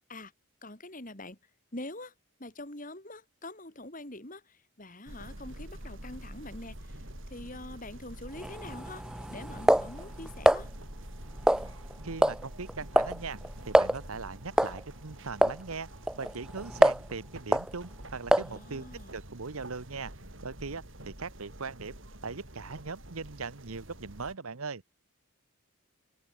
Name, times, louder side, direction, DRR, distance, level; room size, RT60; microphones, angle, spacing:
voice 1, 0.6-1.4 1.7-2.1 2.4-10.7 18.4-19.1, left 2 dB, 35° left, 3.5 m, -45 dB
sound 1, 5.1-24.3, right 1 dB, 60° right, 6.4 m, -46 dB
sound 2, 8.4-10.6 11.5-11.9 12.2-12.4 12.7-13.2 13.4-13.5 13.7-14.0 14.6-14.8 15.4-15.6 16.1-17.1 17.5-17.7 18.3-18.6, right 1 dB, 5° right, 0.3 m, -24 dB
voice 2, 12.0-13.4 13.7-15.9 16.2-18.8 19.1-20.1 20.4-22.0 22.2-24.8, right 4 dB, 75° right, 1.1 m, -39 dB
head